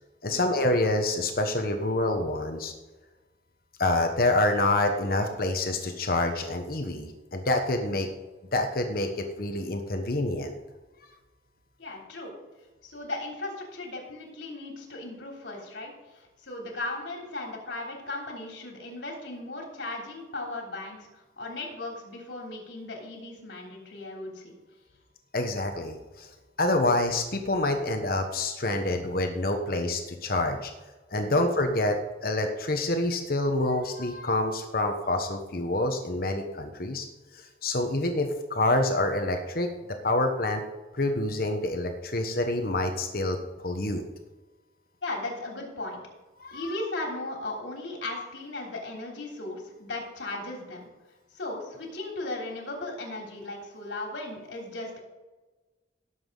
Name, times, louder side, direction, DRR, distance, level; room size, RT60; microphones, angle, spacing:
voice 1, 0.2-2.7 3.8-8.1 8.5-10.5 25.3-26.3 26.6-30.7 31.1-32.0 32.2-37.0 37.3-39.7 40.0-40.6 40.9-44.0 46.4-46.6, left 2 dB, 55° left, 5 dB, 1.2 m, -27 dB
voice 2, 11.8-12.3 12.8-21.1 21.4-24.5 31.3-31.4 45.0-46.0 46.5-50.9 51.3-55.0, left 2 dB, 85° left, 0 dB, 3.3 m, -37 dB
17.5 x 7.3 x 3.9 m, 1.2 s
head